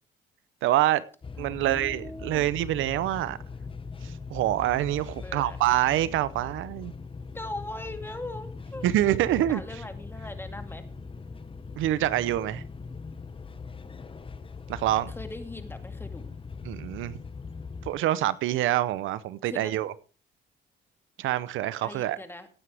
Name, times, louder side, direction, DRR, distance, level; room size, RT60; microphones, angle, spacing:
voice 1, 0.6-1.0 1.4-3.4 4.0-6.9 8.8-9.6 11.8-12.6 14.7-15.1 16.6-17.2 17.9-19.9 21.2-22.2, right 13 dB, 85° right, 0.7 m, -26 dB
sound 1, 1.2-18.0, left 4 dB, 25° left, 0.9 m, -41 dB
voice 2, 1.4-2.5 5.2-5.6 7.3-9.2 9.5-10.8 15.2-16.3 19.4-19.8 21.8-22.5, left 1 dB, 10° left, 2.2 m, -40 dB
17.0 x 9.7 x 3.4 m
cardioid pair, 90°, 20 cm